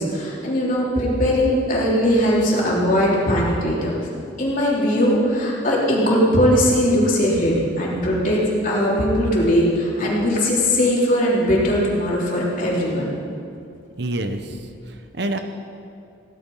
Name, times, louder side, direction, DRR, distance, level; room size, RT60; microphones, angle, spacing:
voice 1, 0.0-3.9 4.4-8.4 8.6-13.1, equal, 45° left, -5 dB, 3.5 m, -19 dB
voice 2, 14.0-15.4, right 1 dB, 60° right, 7 dB, 0.9 m, -28 dB
18.0 x 11.5 x 5.6 m, 2.5 s
head